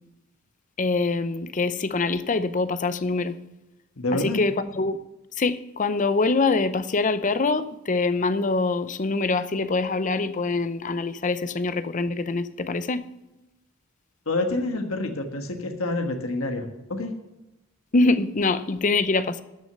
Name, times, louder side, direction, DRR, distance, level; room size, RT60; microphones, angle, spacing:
voice 1, 0.8-3.4 4.1-5.0 5.4-13.0 17.9-19.4, left 3 dB, 35° left, 12 dB, 0.6 m, -24 dB
voice 2, 4.0-4.4 14.3-16.6 16.9-17.1, left 2 dB, 70° left, 4 dB, 1.4 m, -27 dB
13.0 x 6.4 x 6.7 m, 0.99 s
head